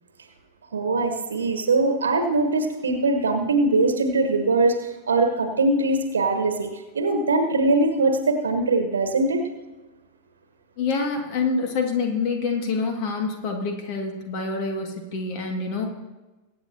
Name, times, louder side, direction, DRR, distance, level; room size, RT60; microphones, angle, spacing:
voice 1, 0.7-9.4, right 2 dB, 70° right, 6 dB, 1.3 m, -22 dB
voice 2, 10.8-15.9, left 4 dB, 45° left, 3 dB, 2.2 m, -26 dB
22.5 x 8.6 x 2.9 m, 1.2 s
figure-of-eight pair, 90°, 0 cm